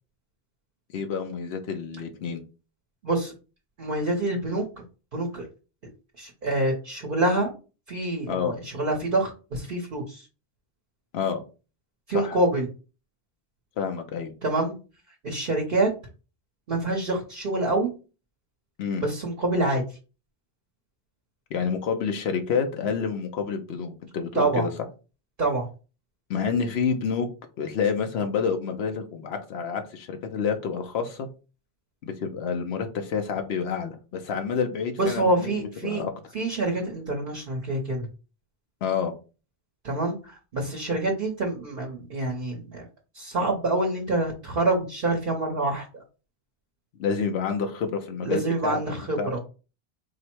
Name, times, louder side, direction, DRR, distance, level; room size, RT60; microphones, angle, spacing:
voice 1, 0.9-2.4 8.3-8.6 11.1-11.4 12.1-12.4 13.8-14.3 18.8-19.0 21.5-24.7 26.3-27.3 27.6-31.3 32.0-35.5 35.8-36.1 38.8-39.1 47.0-48.8 49.2-49.4, left 6 dB, 90° left, 6 dB, 0.9 m, -28 dB
voice 2, 3.8-4.6 5.1-5.5 6.2-7.5 7.9-10.3 12.1-12.7 14.4-14.8 15.2-15.9 16.7-17.9 19.0-19.8 24.3-24.7 25.4-25.7 35.0-36.0 36.3-38.1 39.8-42.8 43.1-45.9 48.2-49.4, right 2 dB, 60° right, 0 dB, 1.0 m, -26 dB
4.8 x 2.1 x 4.4 m, 0.33 s
omnidirectional pair, 1.0 m